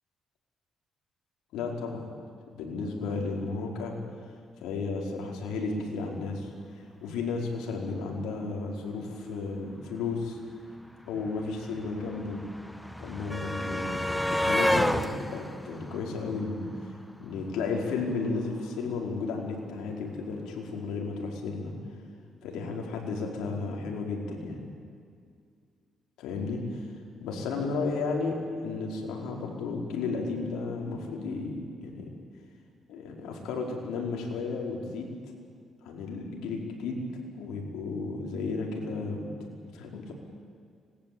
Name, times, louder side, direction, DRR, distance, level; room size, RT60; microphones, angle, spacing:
voice 1, 1.5-2.1 2.5-4.0 4.6-6.5 7.0-10.4 11.0-12.4 13.0-16.7 17.2-21.7 22.4-24.6 26.2-26.9 27.2-32.1 32.9-35.1 35.8-37.0 37.3-39.3 39.7-40.1, left 4 dB, 90° left, 0 dB, 4.8 m, -33 dB
sound 1, 10.5-10.6 10.8-17.0 18.2-18.3 18.6-18.7, equal, 5° left, 1.2 m, -31 dB
25.5 x 20.5 x 8.8 m, 2.2 s
cardioid pair, 90°, 0 cm